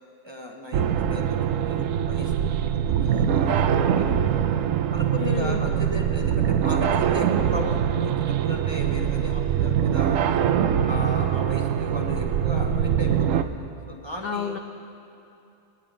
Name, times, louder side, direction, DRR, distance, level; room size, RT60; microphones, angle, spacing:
voice 1, 0.2-4.5 4.9-10.2 10.8-13.5 13.9-14.6, left 1 dB, 20° right, 1 dB, 0.9 m, -36 dB
sound 1, 0.7-13.4, right 9 dB, 70° right, 0.9 m, -23 dB
voice 2, 5.2-5.6 14.2-14.6, left 7 dB, 65° left, 6 dB, 0.5 m, -29 dB
19.5 x 10.0 x 4.9 m, 2.7 s
omnidirectional pair, 1.5 m